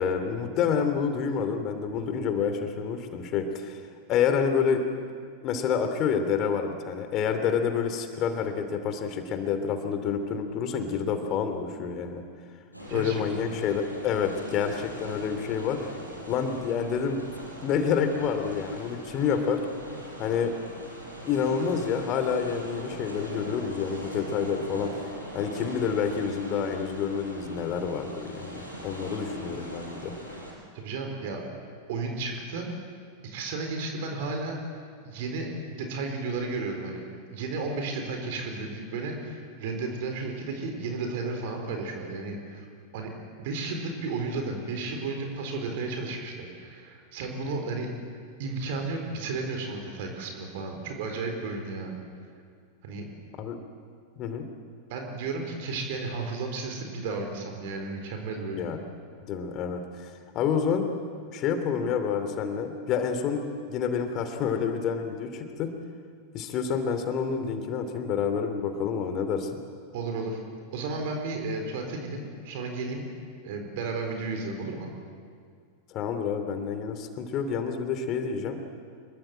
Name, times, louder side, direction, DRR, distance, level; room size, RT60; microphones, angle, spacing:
voice 1, 0.0-3.8 4.1-4.8 5.4-12.2 12.9-15.9 16.3-17.2 17.6-19.7 20.2-20.6 21.3-24.9 25.3-30.1 53.4-53.6 54.2-54.5 58.5-58.8 59.3-60.9 61.3-65.7 66.3-69.5 75.9-78.6, left 6 dB, 35° left, 7 dB, 2.9 m, -28 dB
voice 2, 12.7-13.5 30.7-31.4 31.9-32.7 33.2-34.6 35.0-35.5 35.8-37.0 37.3-42.7 42.9-43.1 43.4-47.9 48.4-52.0 52.8-53.0 54.9-58.6 69.9-70.4 70.7-73.1 73.4-74.9, right 3 dB, 50° right, 3 dB, 4.2 m, -33 dB
sound 1, 12.7-30.5, equal, 90° right, 6.0 m, -41 dB
25.5 x 23.0 x 7.7 m, 2.1 s
figure-of-eight pair, 90°, 0 cm